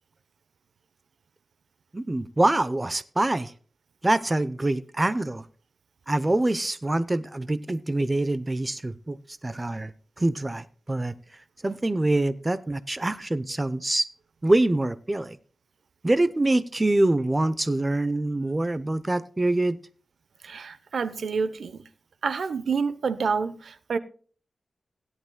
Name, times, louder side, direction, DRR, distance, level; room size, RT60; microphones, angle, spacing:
voice 1, 1.9-3.5 4.0-5.5 6.1-9.2 9.4-9.9 10.2-11.1 11.6-14.0 14.4-15.4 16.0-19.8, right 2 dB, 20° right, 0.6 m, -25 dB
voice 2, 20.4-21.8 22.2-24.0, right 5 dB, 85° right, 0.8 m, -28 dB
17.0 x 11.0 x 2.2 m
wide cardioid pair, 100°, 0 cm